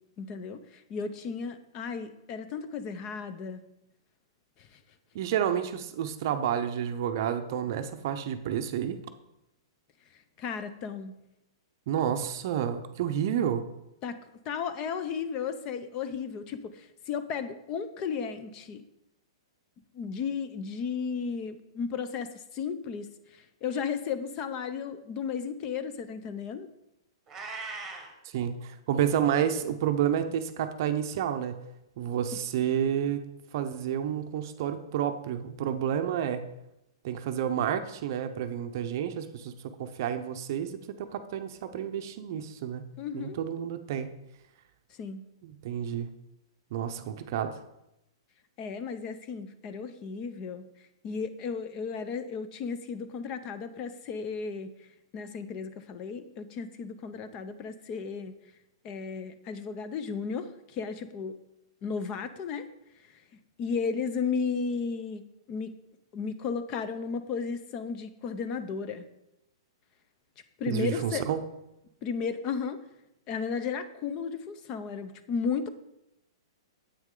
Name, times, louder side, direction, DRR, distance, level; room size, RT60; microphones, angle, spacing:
voice 1, 0.2-3.6 4.6-4.8 10.4-11.2 14.0-14.2 14.4-18.8 19.9-26.7 32.3-32.4 43.0-43.4 45.0-45.3 48.6-50.7 51.0-54.9 55.1-58.3 58.8-61.4 61.8-62.7 63.0-63.2 63.6-65.2 65.5-65.7 66.1-69.1 70.6-71.3 72.0-72.8 73.3-75.7, left 6 dB, 25° left, 11 dB, 0.6 m, -34 dB
voice 2, 5.1-9.0 11.9-13.6 28.3-31.6 32.0-33.2 33.5-36.4 37.0-39.5 39.8-40.7 41.0-42.8 43.1-44.1 45.4-46.1 46.7-47.5 70.7-71.4, right 9 dB, 40° right, 8 dB, 0.7 m, -30 dB
Meow, 27.3-28.1, right 4 dB, 10° right, 1.3 m, -39 dB
9.5 x 8.3 x 3.8 m, 0.87 s
hypercardioid pair, 165°, 3 cm